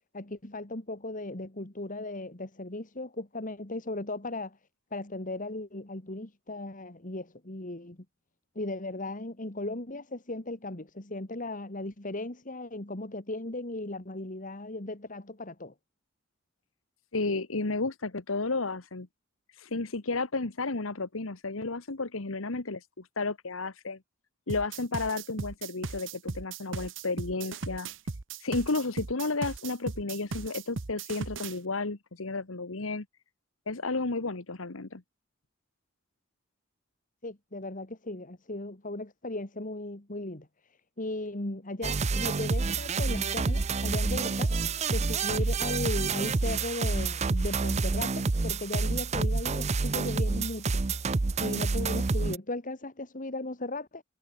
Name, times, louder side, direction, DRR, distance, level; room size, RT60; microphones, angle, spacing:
voice 1, 0.1-4.6 4.9-8.0 8.6-15.7 37.2-40.5 41.0-44.5 44.9-50.8 51.4-54.0, left 2 dB, 40° left, 2.3 m, -37 dB
voice 2, 17.1-19.1 19.5-24.0 24.5-27.9 28.4-33.0 33.7-35.0, left 3 dB, 90° left, 1.5 m, -32 dB
sound 1, 24.5-31.6, right 4 dB, 65° right, 1.0 m, -37 dB
sound 2, 41.8-52.4, right 4 dB, 35° right, 0.6 m, -28 dB
head